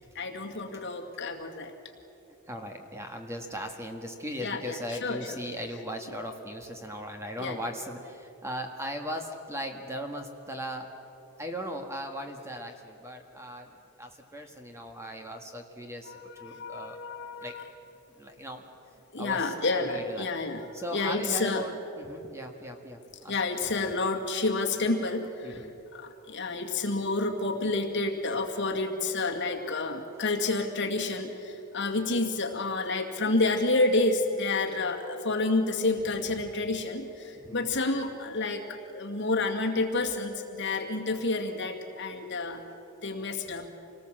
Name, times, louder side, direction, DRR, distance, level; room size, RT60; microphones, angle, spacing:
voice 1, 0.2-1.7 4.4-5.3 7.4-7.6 16.1-17.6 19.1-20.7 20.9-21.6 23.3-25.6 25.9-42.6 43.0-43.7, left 3 dB, 50° left, 2 dB, 2.1 m, -29 dB
voice 2, 2.5-10.9 11.4-13.7 14.0-17.0 17.4-17.6 18.2-18.6 19.2-20.3 20.7-23.3 25.4-25.8 37.3-37.7, equal, 10° right, 4 dB, 1.6 m, -38 dB
27.0 x 19.0 x 7.6 m, 3.0 s
head